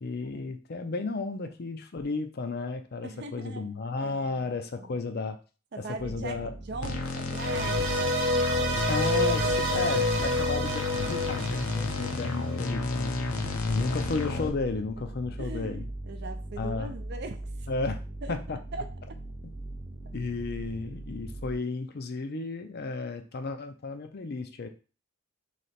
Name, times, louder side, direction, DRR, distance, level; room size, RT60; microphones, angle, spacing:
voice 1, 0.0-5.4 6.0-6.5 8.9-15.9 16.6-16.9 17.7-18.0 18.3-18.6 20.1-24.7, left 3 dB, 50° left, 7 dB, 0.5 m, -33 dB
voice 2, 3.0-3.7 4.0-4.5 4.7-5.0 5.7-8.5 9.4-9.5 13.4-14.0 15.4-17.4 18.2-18.4 18.7-18.9 20.8-21.0, right 3 dB, 50° right, 7 dB, 0.5 m, -41 dB
sound 1, 6.0-21.6, right 1 dB, 20° right, 0.8 m, -40 dB
sound 2, 6.8-14.5, left 3 dB, 85° left, 0.7 m, -31 dB
sound 3, 7.3-12.6, equal, 65° right, 0.9 m, -29 dB
3.2 x 2.9 x 4.2 m, 0.34 s
head